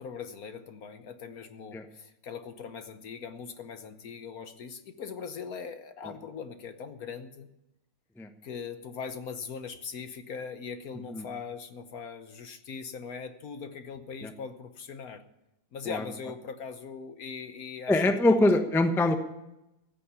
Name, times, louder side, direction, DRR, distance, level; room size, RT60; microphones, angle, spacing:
voice 1, 0.0-7.5 8.4-15.2 15.7-18.1, left 6 dB, 60° left, 9 dB, 1.3 m, -40 dB
voice 2, 17.9-19.2, left 2 dB, ahead, 6 dB, 0.7 m, -24 dB
15.5 x 8.6 x 8.2 m, 0.90 s
omnidirectional pair, 2.0 m